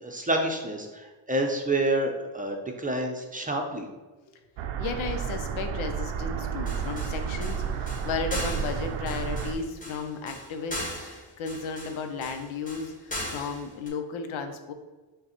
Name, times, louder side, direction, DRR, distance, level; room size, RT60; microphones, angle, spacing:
voice 1, 0.0-3.9, right 1 dB, 15° right, 2 dB, 0.6 m, -28 dB
sound 1, 4.6-9.5, right 7 dB, 75° right, 0.6 m, -31 dB
voice 2, 4.8-14.7, left 5 dB, 80° left, 6 dB, 0.7 m, -34 dB
sound 2, 6.7-13.9, left 1 dB, 15° left, 1.5 m, -38 dB
5.5 x 2.3 x 4.3 m, 1.2 s
cardioid pair, 80°, 48 cm